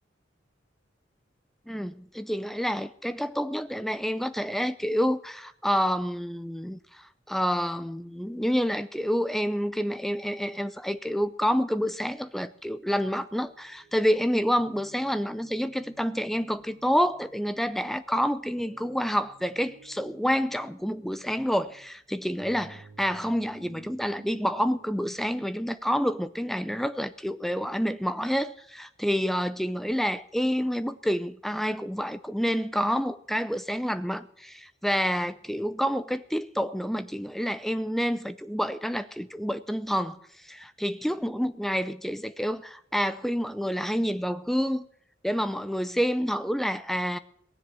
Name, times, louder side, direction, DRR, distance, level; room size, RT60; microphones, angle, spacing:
voice 1, 1.7-44.9 45.2-47.2, equal, ahead, 0.5 m, -28 dB
sound 1, 13.4-25.7, right 2 dB, 40° right, 3.2 m, -54 dB
19.5 x 7.5 x 7.6 m
head